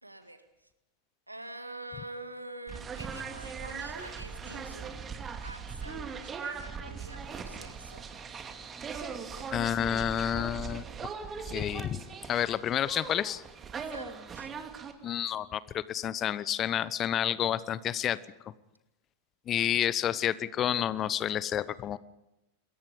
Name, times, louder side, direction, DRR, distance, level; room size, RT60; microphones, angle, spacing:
voice 1, 0.0-0.7 1.3-5.0 5.4-8.3 9.3-9.6 13.8-14.5, right 1 dB, 85° right, 8 dB, 2.1 m, -46 dB
sound 1, 2.7-14.9, right 5 dB, 20° right, 2.4 m, -40 dB
voice 2, 9.5-10.9 11.5-13.4 15.0-18.2 19.5-22.0, left 10 dB, 30° left, 19 dB, 0.9 m, -30 dB
27.0 x 22.0 x 5.2 m, 0.94 s
figure-of-eight pair, 90°, 0 cm